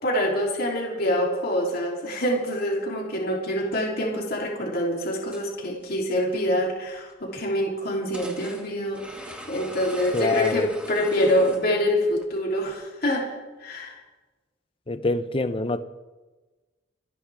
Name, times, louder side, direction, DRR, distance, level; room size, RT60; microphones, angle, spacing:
voice 1, 0.0-14.0, equal, 55° left, 3.2 m, -26 dB
sound 1, 5.3-5.4 5.8-5.9 7.1-7.2 8.1-11.8 12.2-12.3 12.7-12.8, equal, 5° right, 2.1 m, -41 dB
voice 2, 10.1-10.7 14.9-15.8, left 3 dB, 30° left, 0.7 m, -25 dB
28.0 x 11.0 x 3.6 m
head